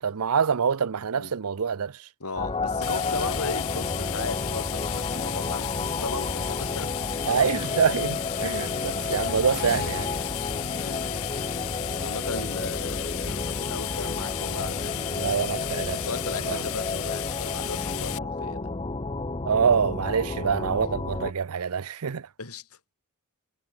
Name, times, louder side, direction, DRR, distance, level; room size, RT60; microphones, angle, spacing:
voice 1, 0.0-2.1 7.3-10.1 12.4-12.5 15.1-16.0 16.3-16.6 19.4-22.3, right 6 dB, 75° right, 0.6 m, -26 dB
voice 2, 2.2-7.5 10.8-11.0 12.0-15.0 15.4-18.7 22.4-22.7, left 3 dB, 85° left, 4.4 m, -37 dB
sound 1, 2.4-21.3, left 3 dB, 25° left, 0.9 m, -31 dB
sound 2, 2.8-18.2, left 15 dB, 65° left, 0.4 m, -34 dB
sound 3, 9.5-11.7, left 3 dB, 45° left, 1.7 m, -41 dB
head